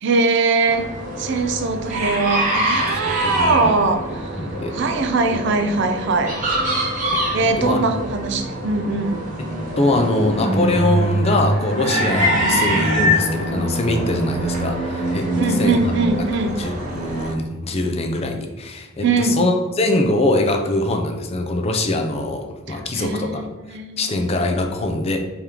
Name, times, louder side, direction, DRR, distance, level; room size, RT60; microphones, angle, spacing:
voice 1, 0.0-0.9 1.2-4.4 4.7-6.4 7.3-9.2 12.3-12.5 15.3-16.6 19.0-19.4 22.7-24.2, right 3 dB, 60° right, 6 dB, 0.4 m, -21 dB
sound 1, 0.7-17.3, right 1 dB, 40° right, 0.8 m, -24 dB
voice 2, 3.1-3.7 4.1-4.7 5.3-5.4 7.1-7.2 7.6-7.8 9.8-15.3 15.6-15.8 16.6-23.5 24.0-25.2, left 2 dB, 30° left, 4 dB, 0.4 m, -23 dB
3.5 x 3.5 x 2.9 m, 1.2 s
head